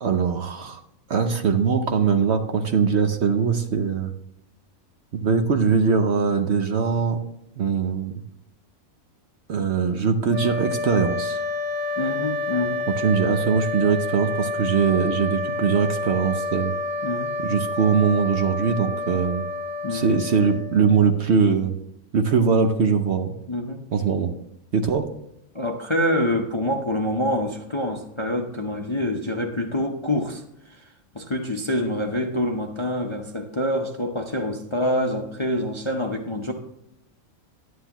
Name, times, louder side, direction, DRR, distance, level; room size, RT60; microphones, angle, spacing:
voice 1, 0.0-0.8 1.1-4.1 5.1-7.2 7.6-8.1 9.5-11.4 12.9-16.7 17.4-19.4 19.9-21.7 22.1-23.4 23.9-24.3 24.7-25.1, right 6 dB, 55° right, 6 dB, 0.9 m, -21 dB
sound 1, 10.3-21.2, left 2 dB, 90° right, 1.5 m, -29 dB
voice 2, 12.0-12.8 17.0-17.4 19.8-20.1 23.5-23.8 25.5-30.9 31.1-36.5, left 1 dB, 30° left, 2 dB, 0.6 m, -26 dB
11.0 x 9.6 x 2.9 m, 0.82 s
omnidirectional pair, 1.5 m